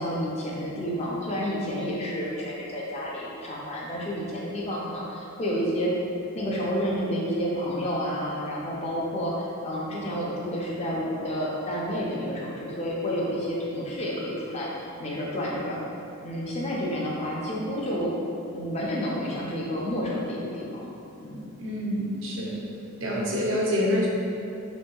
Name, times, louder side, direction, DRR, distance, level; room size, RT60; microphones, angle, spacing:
voice 1, 0.0-5.9 6.3-15.8 16.2-18.1 18.5-20.9 21.2-21.5, equal, 30° left, -4 dB, 0.4 m, -30 dB
voice 2, 21.6-22.6 23.0-24.1, left 1 dB, 60° right, -4 dB, 0.6 m, -26 dB
3.4 x 2.6 x 2.2 m, 2.7 s
head